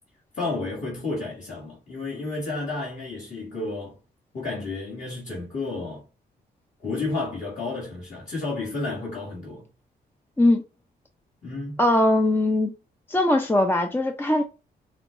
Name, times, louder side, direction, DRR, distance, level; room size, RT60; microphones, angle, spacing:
voice 1, 0.3-3.9 4.3-6.0 6.8-9.7 11.4-11.8, left 3 dB, 45° left, 2.0 m, -31 dB
voice 2, 11.8-12.7 13.1-14.4, left 1 dB, 10° left, 0.6 m, -20 dB
5.8 x 2.3 x 3.7 m
cardioid pair, 100°, 17 cm